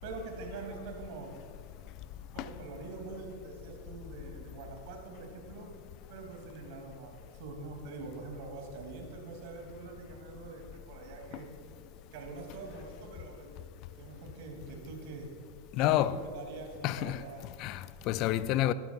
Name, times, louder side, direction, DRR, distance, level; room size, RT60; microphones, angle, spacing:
voice 1, 0.0-1.3 2.3-5.7 6.1-11.5 12.1-13.5 13.9-15.3 15.8-17.5, right 3 dB, 45° right, 2.8 m, -44 dB
voice 2, 15.7-16.2 16.8-17.2 17.6-18.7, left 13 dB, 40° left, 0.4 m, -29 dB
20.0 x 13.0 x 2.5 m
figure-of-eight pair, 90°, 0 cm